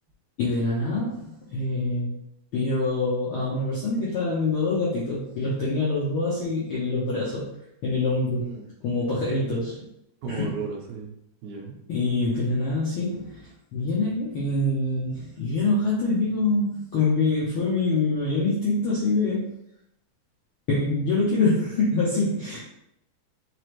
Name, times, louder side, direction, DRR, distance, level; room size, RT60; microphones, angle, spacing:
voice 1, 0.4-2.1 2.5-7.4 7.8-8.5 8.8-9.8 10.3-10.5 11.9-19.5 20.7-22.6, left 2 dB, 65° left, -7 dB, 1.3 m, -25 dB
voice 2, 10.2-11.1 11.4-11.7, right 5 dB, 75° right, 0 dB, 2.0 m, -34 dB
4.9 x 3.4 x 3.1 m, 0.81 s
omnidirectional pair, 3.5 m